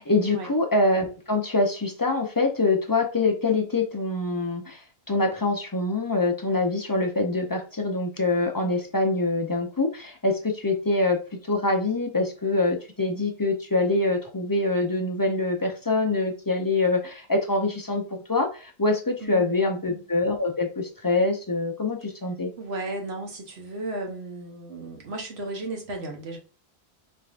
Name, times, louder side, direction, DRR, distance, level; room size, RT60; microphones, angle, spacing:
voice 1, 0.0-4.8 5.1-11.2 11.5-18.0 18.3-22.5, left 2 dB, 30° left, 0.4 m, -25 dB
voice 2, 19.2-20.0 22.6-26.4, right 2 dB, 75° right, 1.3 m, -35 dB
4.2 x 3.4 x 2.5 m
omnidirectional pair, 1.1 m